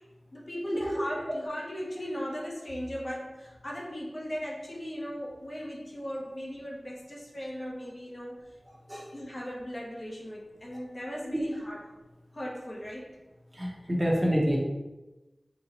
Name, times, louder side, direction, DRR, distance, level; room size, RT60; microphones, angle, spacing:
voice 1, 0.3-8.4 9.1-11.9 12.3-13.2, equal, 45° left, -2 dB, 0.7 m, -38 dB
voice 2, 13.6-14.6, equal, 25° right, -2 dB, 0.7 m, -27 dB
4.0 x 2.1 x 2.8 m, 1.1 s
wide cardioid pair, 45°, 0 cm